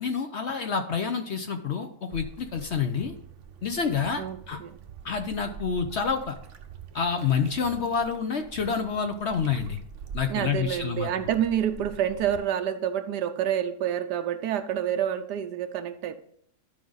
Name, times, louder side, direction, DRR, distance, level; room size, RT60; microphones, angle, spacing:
voice 1, 0.0-3.1 3.6-4.6 5.0-6.3 6.9-9.8 10.1-11.1, left 6 dB, 60° left, 6 dB, 0.8 m, -28 dB
sound 1, 2.1-12.4, right 6 dB, 55° right, 0.9 m, -45 dB
voice 2, 4.2-4.8 10.3-16.1, right 10 dB, 85° right, 9 dB, 1.3 m, -28 dB
12.0 x 5.1 x 3.9 m, 0.64 s
omnidirectional pair, 1.7 m